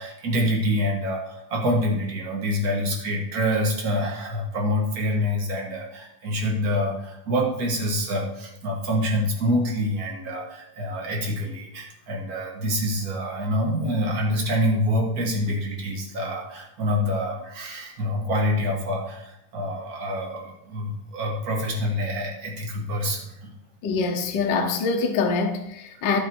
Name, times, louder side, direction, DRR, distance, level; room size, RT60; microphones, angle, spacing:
voice 1, 0.0-23.5, equal, 35° right, 1.8 m, -26 dB
voice 2, 23.8-26.2, left 4 dB, 65° left, 1.1 m, -24 dB
11.5 x 5.9 x 4.5 m
omnidirectional pair, 3.4 m